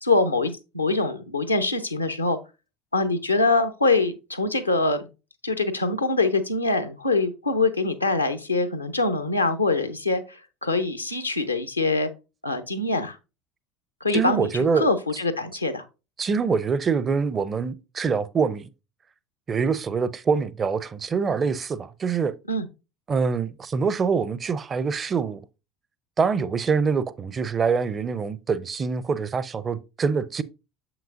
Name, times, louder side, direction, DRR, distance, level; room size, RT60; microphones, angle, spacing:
voice 1, 0.0-2.4 2.9-5.1 5.4-12.1 12.4-13.2 14.0-15.8 22.5-22.7, left 3 dB, 90° left, 0.7 m, -24 dB
voice 2, 14.1-14.9 16.2-18.7 19.5-22.3 23.1-25.4 26.2-30.4, right 5 dB, 30° right, 0.5 m, -25 dB
7.0 x 6.0 x 2.5 m
figure-of-eight pair, 70°, 0 cm